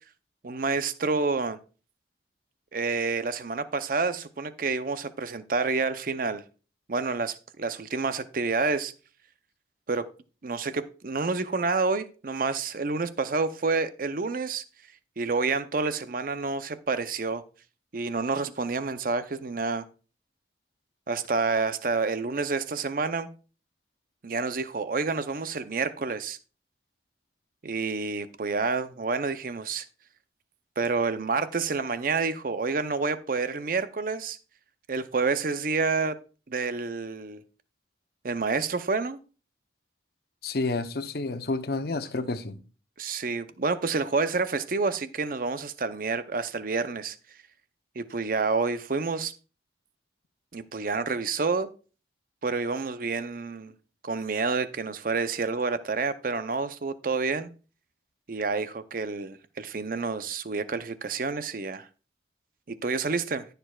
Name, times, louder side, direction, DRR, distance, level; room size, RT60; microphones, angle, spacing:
voice 1, 0.4-1.6 2.7-6.4 6.9-8.9 9.9-10.1 10.4-14.6 15.2-17.4 17.9-19.9 21.1-23.3 24.2-26.4 27.6-29.9 30.8-34.4 34.9-36.2 36.5-37.4 38.2-39.2 43.0-47.2 48.0-49.3 50.5-51.7 52.4-53.7 54.0-57.5 58.3-61.9 62.7-63.5, right 4 dB, 50° right, 0.6 m, -28 dB
voice 2, 40.4-42.6, left 3 dB, 60° left, 0.7 m, -30 dB
14.5 x 6.8 x 2.3 m
head